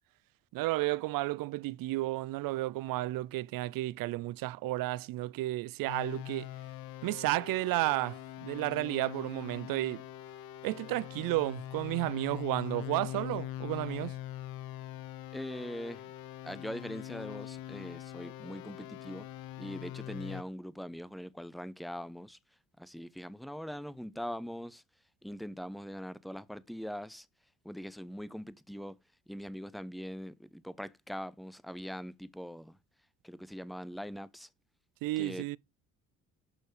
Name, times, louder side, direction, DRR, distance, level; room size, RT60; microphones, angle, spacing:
voice 1, 0.5-6.5 7.0-10.0 10.6-14.1 35.0-35.6, right 18 dB, 65° right, 0.5 m, -32 dB
sound 1, 5.9-20.4, left 13 dB, 70° left, 0.9 m, -43 dB
voice 2, 15.3-16.1 16.4-19.3 19.6-22.4 22.8-24.8 25.2-27.3 27.6-29.0 29.3-32.8 33.2-34.5 35.2-35.6, equal, ahead, 0.8 m, -42 dB
12.0 x 4.4 x 3.3 m
hypercardioid pair, 60°, 37 cm